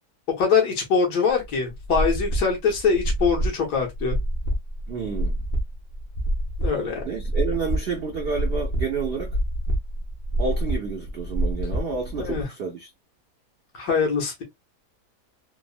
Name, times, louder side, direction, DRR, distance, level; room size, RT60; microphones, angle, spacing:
voice 1, 0.3-4.2 6.6-7.0 12.2-12.5 13.7-14.4, left 5 dB, 75° left, 1.7 m, -23 dB
sound 1, 1.3-12.4, right 1 dB, 50° left, 0.8 m, -27 dB
voice 2, 4.9-5.4 7.0-9.4 10.4-12.9, right 5 dB, 70° right, 0.5 m, -29 dB
3.5 x 2.1 x 2.2 m
omnidirectional pair, 1.8 m